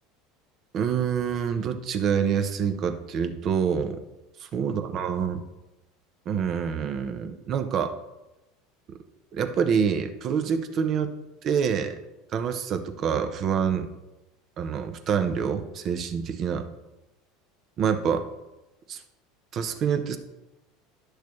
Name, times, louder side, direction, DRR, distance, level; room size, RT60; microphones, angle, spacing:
voice 1, 0.7-4.0 4.4-5.4 6.3-7.9 9.3-11.1 11.4-12.0 12.3-13.9 14.6-16.6 17.8-18.2 18.9-19.0 19.5-20.2, right 7 dB, 45° right, 8 dB, 0.9 m, -26 dB
10.5 x 6.6 x 3.2 m, 0.99 s
hypercardioid pair, 90°, 0 cm